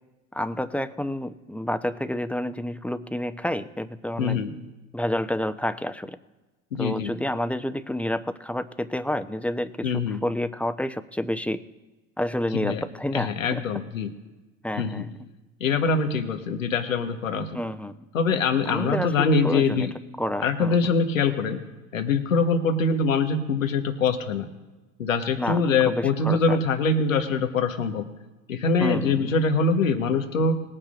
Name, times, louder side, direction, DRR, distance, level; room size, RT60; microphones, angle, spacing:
voice 1, 0.3-4.4 4.9-6.2 6.8-11.6 12.2-13.6 14.6-15.1 17.5-18.0 18.6-19.9 20.2-20.8 25.4-26.6 28.8-29.3, left 1 dB, 5° left, 10 dB, 0.9 m, -29 dB
voice 2, 4.2-4.5 6.7-7.1 9.8-10.2 12.5-12.8 13.1-14.1 14.8-15.0 15.6-17.5 18.1-19.9 20.4-21.6 21.9-24.5 25.0-28.1 28.5-30.6, left 4 dB, 85° left, 6 dB, 1.3 m, -23 dB
21.0 x 9.1 x 2.5 m, 1.2 s
figure-of-eight pair, 65°, 39 cm